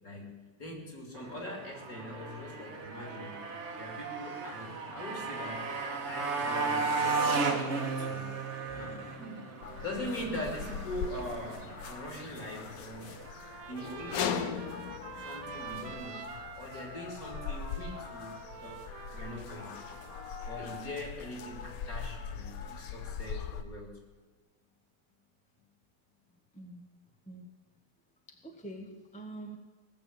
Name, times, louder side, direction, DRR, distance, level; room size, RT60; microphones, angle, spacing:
voice 1, 0.0-3.4 3.7-5.7 6.0-7.2 8.0-8.4 8.7-13.2 13.6-14.9 15.2-18.8 19.1-19.7 20.4-23.9, left 1 dB, 40° left, 1 dB, 3.3 m, -42 dB
Motorcycle, 1.1-13.3, right 4 dB, 35° right, 1.5 m, -35 dB
sound 1, 9.6-23.6, left 7 dB, 65° left, 0.9 m, -40 dB
Trumpet, 13.2-20.9, right 10 dB, 75° right, 1.6 m, -48 dB
voice 2, 26.5-26.9 27.3-27.5 28.3-29.6, right 2 dB, 5° left, 2 dB, 0.9 m, -45 dB
18.5 x 7.3 x 8.6 m, 1.4 s
omnidirectional pair, 2.4 m